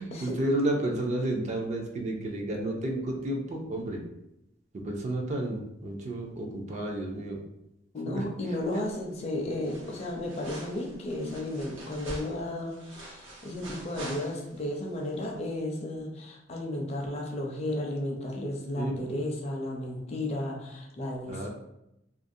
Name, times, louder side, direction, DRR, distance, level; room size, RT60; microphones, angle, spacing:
voice 1, 0.0-4.0 4.7-7.4 8.1-8.3 18.8-18.9 21.3-21.5, right 1 dB, 35° right, 1 dB, 0.4 m, -31 dB
voice 2, 7.9-21.5, left 1 dB, 35° left, 0 dB, 0.4 m, -33 dB
sound 1, 8.6-9.2 9.4-14.7 15.1-15.2, right 1 dB, 80° right, 0.7 m, -45 dB
2.4 x 2.0 x 2.6 m, 0.85 s
head